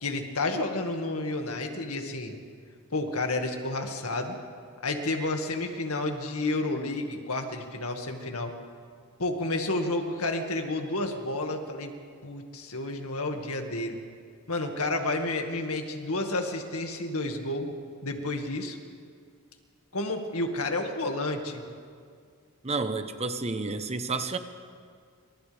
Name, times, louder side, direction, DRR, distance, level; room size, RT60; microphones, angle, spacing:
voice 1, 0.0-2.3 2.9-4.4 4.8-8.5 9.2-11.9 12.2-14.0 14.5-17.7 18.0-18.8 19.9-21.6, left 2 dB, 80° left, 3 dB, 2.0 m, -30 dB
voice 2, 22.6-24.4, right 3 dB, 30° right, 8 dB, 1.0 m, -30 dB
28.5 x 25.5 x 3.5 m, 2.1 s
head